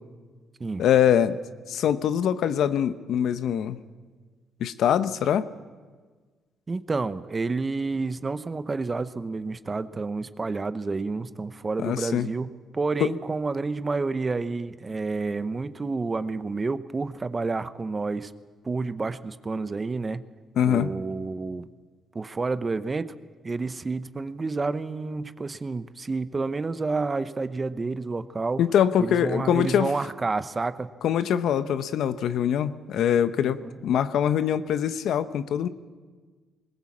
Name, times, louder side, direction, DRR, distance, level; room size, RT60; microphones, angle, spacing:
voice 1, 0.8-1.4 1.7-3.8 4.6-5.5 11.8-12.3 13.0-13.1 20.6-20.9 28.6-29.9 31.0-35.7, left 9 dB, 75° left, 12 dB, 0.8 m, -23 dB
voice 2, 6.7-18.3 18.6-20.2 20.7-21.6 22.1-23.1 23.4-28.6 29.0-30.9 33.6-33.8, right 3 dB, 30° right, 12 dB, 0.9 m, -29 dB
20.5 x 19.0 x 7.3 m, 1.5 s
cardioid pair, 90°, 0 cm